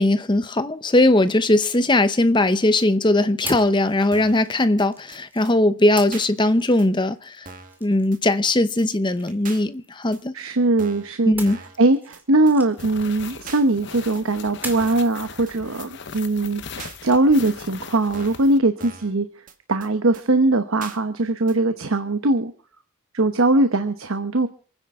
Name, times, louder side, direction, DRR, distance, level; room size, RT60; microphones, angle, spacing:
voice 1, 0.0-7.5 7.8-10.3 11.3-11.6, left 1 dB, 20° left, 0.8 m, -19 dB
sound 1, 1.1-2.6 3.5-5.5 6.0-10.6 11.4-13.9 14.6-15.1, right 2 dB, 10° right, 2.2 m, -42 dB
sound 2, 2.8-2.9 3.4-3.8 4.1-4.4 4.8-4.9 5.1-5.2 5.5-5.6 6.1-6.3 6.8-6.9 7.5-7.8 8.1-8.2 8.5-8.6 8.8-8.9 9.4-9.6 10.1-10.2 10.8-11.1 11.5-11.8 12.1-12.2 12.5-12.6 12.8-12.9 13.5-13.6 14.1-14.2 14.8-15.1 15.5-15.6 15.8-15.9 16.1-16.2 16.8-17.0 17.5-17.6 18.1-18.5 18.8-19.1 19.5-19.6 19.8-19.9 20.1-20.2 20.8-21.0 21.5-21.6, right 4 dB, 40° right, 1.7 m, -40 dB
voice 2, 10.3-11.3 11.8-19.3 19.7-22.5 23.1-24.5, right 2 dB, 75° right, 1.0 m, -20 dB
sound 3, 12.8-18.6, left 6 dB, 55° left, 0.9 m, -39 dB
27.5 x 9.9 x 3.7 m
head